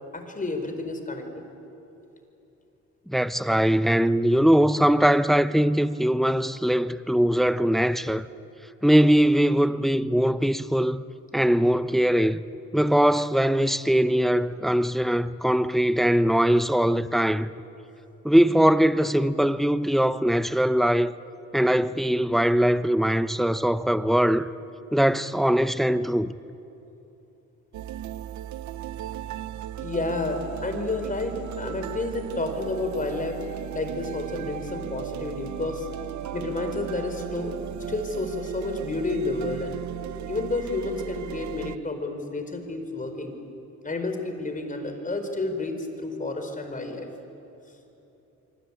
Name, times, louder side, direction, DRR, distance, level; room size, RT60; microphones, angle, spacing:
voice 1, 0.1-1.4 29.8-33.4 33.7-35.9 36.3-37.6 37.9-39.8 40.2-43.4 43.8-47.1, left 2 dB, 25° left, 4.6 m, -30 dB
voice 2, 3.1-8.3 8.8-11.0 11.3-12.4 12.7-17.5 18.2-21.1 21.5-24.5 24.9-26.3, equal, ahead, 0.7 m, -21 dB
sound 1, 27.7-41.8, right 11 dB, 70° right, 0.8 m, -36 dB
26.0 x 24.5 x 8.7 m
cardioid pair, 90°, 30 cm